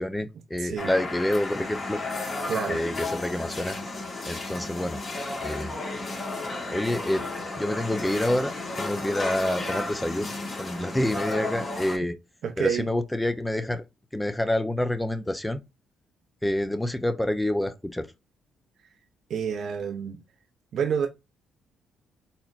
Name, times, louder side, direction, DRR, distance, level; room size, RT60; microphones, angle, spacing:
voice 1, 0.0-2.0 2.7-3.8 4.3-5.0 5.4-5.8 6.7-7.2 7.6-12.2 12.6-13.8 14.1-15.6 16.4-18.1, left 1 dB, 10° left, 0.5 m, -27 dB
voice 2, 0.6-1.0 2.5-2.9 12.4-12.9 19.3-20.2 20.7-21.1, right 7 dB, 65° right, 0.6 m, -28 dB
sound 1, 0.8-12.0, left 2 dB, 40° left, 1.5 m, -33 dB
4.2 x 2.9 x 2.4 m
cardioid pair, 90°, 0 cm